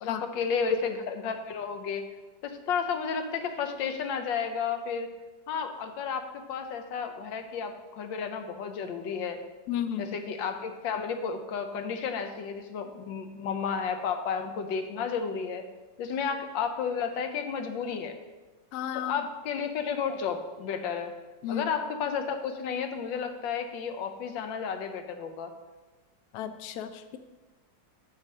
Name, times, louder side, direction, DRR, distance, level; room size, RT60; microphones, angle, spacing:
voice 1, 0.0-2.0 2.4-5.1 5.5-9.4 10.0-15.6 16.0-18.2 18.9-21.1 21.5-25.5, left 6 dB, 90° left, 7 dB, 1.5 m, -32 dB
voice 2, 9.7-10.1 18.7-19.2 21.4-21.7 26.3-27.2, left 9 dB, 70° left, 10 dB, 1.0 m, -33 dB
8.7 x 4.2 x 6.3 m, 1.2 s
omnidirectional pair, 2.0 m